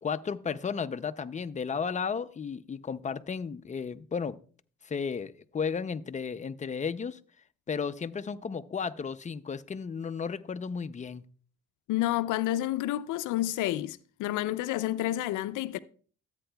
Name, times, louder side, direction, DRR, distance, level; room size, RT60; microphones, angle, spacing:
voice 1, 0.0-4.4 4.8-7.2 7.7-11.2, left 6 dB, 25° left, 0.5 m, -34 dB
voice 2, 11.9-15.8, left 14 dB, 85° left, 0.5 m, -29 dB
13.0 x 8.8 x 2.3 m
cardioid pair, 90°, 30 cm